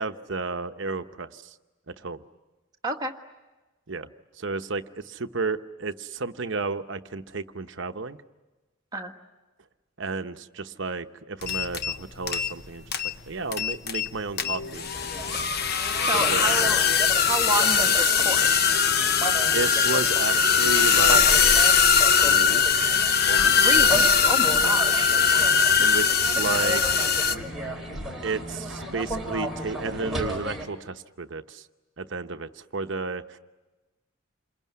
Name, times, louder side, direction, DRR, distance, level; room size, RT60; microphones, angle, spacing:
voice 1, 0.0-1.6 1.9-2.2 3.9-4.1 4.4-8.2 10.0-12.8 13.3-14.8 16.3-16.4 19.5-21.2 22.2-23.0 23.3-23.5 25.8-27.1 28.2-31.6 32.0-33.4, right 4 dB, 60° right, 9 dB, 0.9 m, -32 dB
sound 1, 11.4-12.0 12.2-12.7 12.9-13.1 13.5-14.1 14.4-27.4, left 6 dB, 45° left, 1.0 m, -21 dB
sound 2, 14.4-30.7, left 1 dB, 80° left, 2.3 m, -42 dB
sound 3, 14.9-30.7, right 1 dB, ahead, 3.6 m, -35 dB
voice 2, 16.0-16.8 17.2-18.7 23.6-25.1, right 2 dB, 20° right, 2 dB, 1.6 m, -30 dB
28.0 x 22.5 x 9.5 m, 1.2 s
head